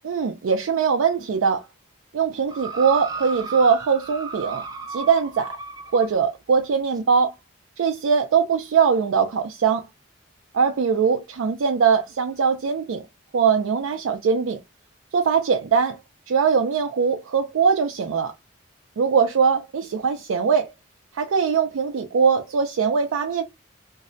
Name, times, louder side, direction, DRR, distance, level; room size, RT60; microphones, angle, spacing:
voice 1, 0.0-1.6 2.1-4.6 4.9-5.6 5.9-7.3 7.8-9.9 10.5-13.0 13.3-14.6 15.1-16.0 16.3-18.3 19.0-20.7 21.1-23.4, right 6 dB, 90° right, 0.4 m, -21 dB
sound 1, 2.5-6.1 7.0-7.1, right 5 dB, 20° right, 0.3 m, -34 dB
2.6 x 2.0 x 2.5 m
head